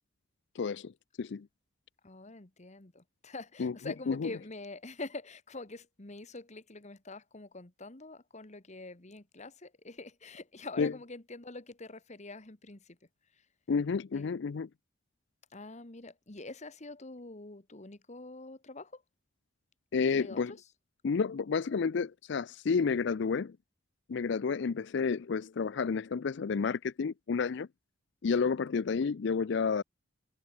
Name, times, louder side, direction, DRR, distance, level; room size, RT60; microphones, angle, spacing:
voice 1, 0.5-0.9 1.2-1.5 3.6-3.7 4.1-4.3 10.8-10.9 13.7-14.7 19.9-20.5 21.0-23.6 24.1-27.7 28.2-29.8, left 5 dB, 65° left, 0.4 m, -30 dB
voice 2, 2.0-13.0 13.3-13.4 14.1-14.4 15.5-19.0 20.1-20.6, left 2 dB, 35° left, 1.5 m, -45 dB
head